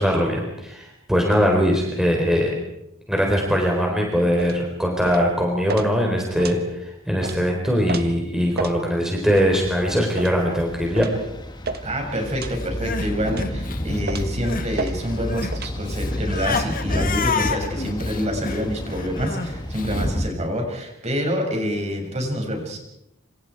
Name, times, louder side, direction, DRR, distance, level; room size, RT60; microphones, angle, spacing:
voice 1, 0.0-2.5 3.1-11.1, equal, 5° right, 0 dB, 4.1 m, -21 dB
sound 1, 4.4-4.6 5.0-5.3 5.7-5.9 6.4-6.6 7.2-7.4 7.9-8.1 8.6-8.8 9.3-9.5 10.2-10.4 11.0-11.2 11.6-11.9 12.4-12.6 13.3-13.5 14.1-14.3 14.8-14.9 15.5-15.7, right 3 dB, 50° right, 1.5 m, -30 dB
sound 2, 9.3-20.3, equal, 20° left, 1.8 m, -30 dB
voice 2, 11.8-22.8, equal, 35° right, 2 dB, 6.5 m, -27 dB
Crying sobbing, 12.6-14.8 15.0-20.1, left 5 dB, 45° left, 1.9 m, -29 dB
27.0 x 27.0 x 4.7 m, 0.83 s
head